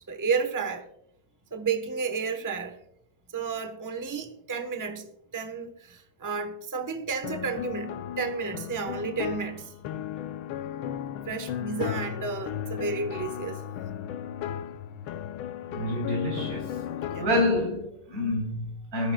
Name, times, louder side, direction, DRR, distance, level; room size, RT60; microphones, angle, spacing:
voice 1, 0.1-0.9 1.5-2.8 3.3-5.1 5.3-9.7 11.3-13.6 17.0-17.3, right 5 dB, 15° right, 0.6 m, -32 dB
sound 1, 7.2-17.7, left 10 dB, 80° left, 1.5 m, -35 dB
voice 2, 15.7-16.7 17.2-19.1, left 1 dB, 45° right, 4.3 m, -27 dB
19.5 x 14.0 x 2.3 m
omnidirectional pair, 2.2 m